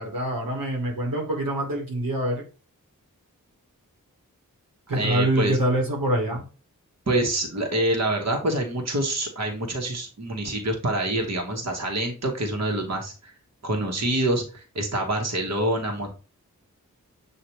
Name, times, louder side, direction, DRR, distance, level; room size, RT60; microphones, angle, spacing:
voice 1, 0.0-2.4 4.9-6.4, right 1 dB, 90° right, 0 dB, 1.2 m, -25 dB
voice 2, 4.9-5.6 7.1-13.3 13.6-16.2, right 1 dB, 50° right, 1 dB, 1.1 m, -26 dB
6.5 x 2.5 x 2.9 m, 0.36 s
cardioid pair, 40°, 34 cm